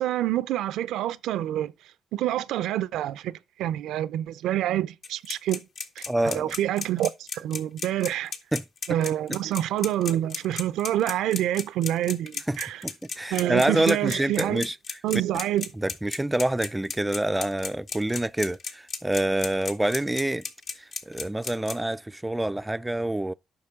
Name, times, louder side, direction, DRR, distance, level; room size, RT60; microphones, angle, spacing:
voice 1, 0.0-1.7 2.1-5.6 6.0-8.3 8.9-12.8 13.3-14.7 15.0-15.7, right 12 dB, 85° right, 0.5 m, -27 dB
sound 1, 5.0-21.7, left 5 dB, 60° left, 1.6 m, -34 dB
voice 2, 6.1-6.5 8.5-8.6 12.5-12.6 12.8-14.7 15.8-20.4 21.1-23.3, right 1 dB, 10° right, 0.4 m, -26 dB
8.7 x 6.0 x 3.6 m
supercardioid pair, 70°, 0 cm